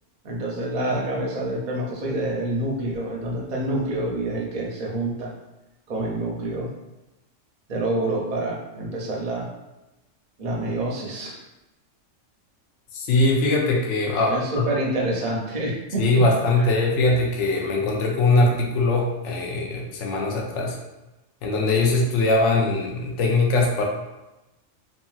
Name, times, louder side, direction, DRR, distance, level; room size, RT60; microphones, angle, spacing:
voice 1, 0.2-5.3 5.9-6.7 7.7-9.5 10.4-11.4 14.3-16.0 16.6-16.7, right 1 dB, 50° right, -2 dB, 0.6 m, -27 dB
voice 2, 12.9-14.7 16.0-20.8 21.4-23.9, left 2 dB, 70° left, 0 dB, 0.9 m, -21 dB
2.8 x 2.6 x 2.3 m, 1.0 s
omnidirectional pair, 1.3 m